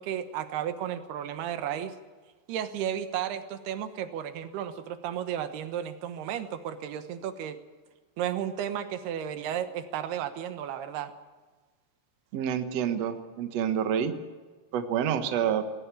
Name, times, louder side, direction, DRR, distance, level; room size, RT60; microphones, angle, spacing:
voice 1, 0.0-1.9 2.5-7.6 8.2-11.1, right 10 dB, 70° right, 10 dB, 2.9 m, -33 dB
voice 2, 12.3-14.1 14.7-15.7, right 8 dB, 85° right, 7 dB, 1.4 m, -28 dB
19.0 x 17.5 x 8.4 m, 1.4 s
omnidirectional pair, 5.3 m